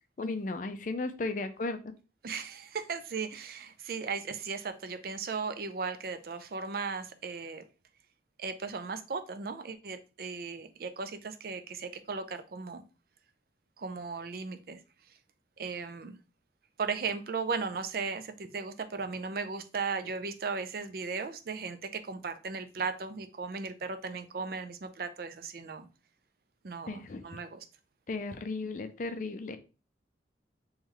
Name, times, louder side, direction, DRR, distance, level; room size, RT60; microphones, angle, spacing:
voice 1, 0.2-1.8 26.9-27.2 28.1-29.6, left 3 dB, 45° left, 9 dB, 0.4 m, -35 dB
voice 2, 2.2-7.6 8.4-12.8 13.8-14.8 15.6-16.2 16.8-25.9 26.6-27.6, right 5 dB, 55° right, 9 dB, 0.4 m, -36 dB
3.1 x 3.1 x 3.7 m, 0.32 s
head